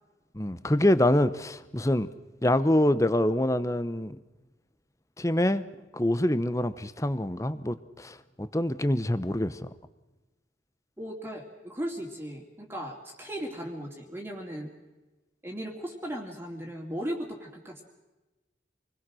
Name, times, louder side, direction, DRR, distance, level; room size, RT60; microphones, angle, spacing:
voice 1, 0.3-2.1 2.4-4.2 5.2-5.6 5.9-9.7, left 1 dB, 15° left, 14 dB, 0.9 m, -25 dB
voice 2, 11.0-14.7 15.4-17.9, equal, 10° right, 0 dB, 2.8 m, -37 dB
27.5 x 21.0 x 6.3 m, 1.1 s
head